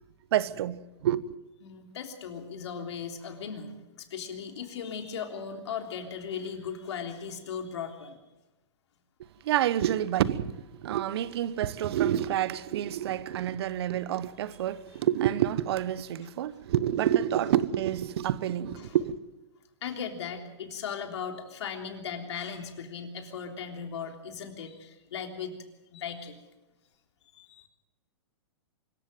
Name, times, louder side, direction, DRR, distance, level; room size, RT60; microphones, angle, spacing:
voice 1, 0.3-1.3 9.2-19.2, right 11 dB, 65° right, 1.1 m, -28 dB
voice 2, 1.6-8.2 18.8-19.0 19.8-25.6 25.9-26.4 27.3-27.7, left 7 dB, 70° left, 3.4 m, -37 dB
24.5 x 14.5 x 7.7 m
hypercardioid pair, 135°, 15 cm